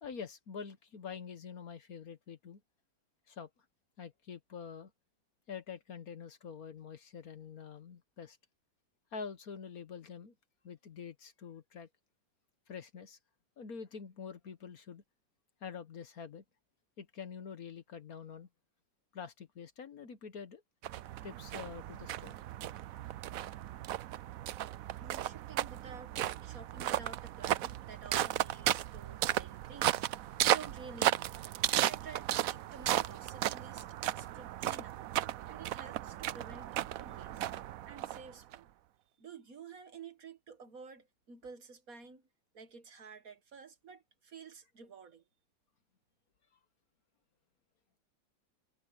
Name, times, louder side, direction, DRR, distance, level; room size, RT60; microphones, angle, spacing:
voice 1, 0.0-2.6 3.3-3.5 4.0-4.9 5.5-8.4 9.1-10.3 10.6-11.9 12.7-13.2 13.6-15.0 15.6-16.4 17.0-18.5 19.1-20.6 21.2-22.3, left 6 dB, 55° left, 1.5 m, -46 dB
sound 1, 20.8-38.6, right 13 dB, 70° right, 0.8 m, -35 dB
voice 2, 25.0-30.0 30.4-31.3 31.7-33.9 34.2-35.0 35.5-37.4 37.8-38.7 39.2-42.2 42.5-45.2, right 5 dB, 50° right, 1.7 m, -51 dB
omnidirectional pair, 2.0 m